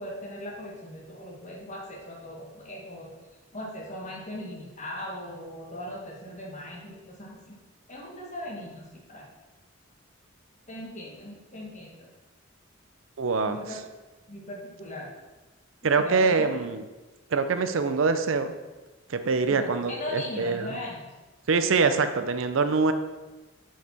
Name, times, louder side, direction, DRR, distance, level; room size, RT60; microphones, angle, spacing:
voice 1, 0.0-3.1 3.5-7.6 7.9-9.3 10.7-12.1 13.5-13.7 14.3-15.1 16.0-16.5 19.5-21.0, left 1 dB, 35° left, -1 dB, 1.5 m, -39 dB
voice 2, 13.2-13.6 15.8-16.8 17.3-18.5 19.1-20.7 21.5-22.9, right 4 dB, 70° right, 9 dB, 0.5 m, -24 dB
8.0 x 4.8 x 4.3 m, 1.2 s
head